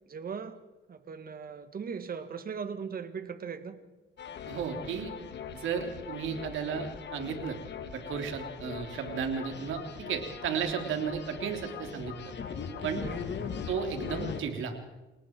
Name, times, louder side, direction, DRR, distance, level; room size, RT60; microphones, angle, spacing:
voice 1, 0.1-0.6 0.9-3.8 13.0-13.2, right 6 dB, 50° right, 10 dB, 2.0 m, -39 dB
sound 1, 4.2-14.4, left 6 dB, 60° left, 2.1 m, -40 dB
voice 2, 4.5-5.1 5.5-7.6 7.9-12.3 12.8-13.0 13.7-14.7, right 7 dB, 80° right, 5 dB, 3.4 m, -34 dB
29.5 x 19.0 x 4.7 m, 1.1 s
cardioid pair, 90°, 20 cm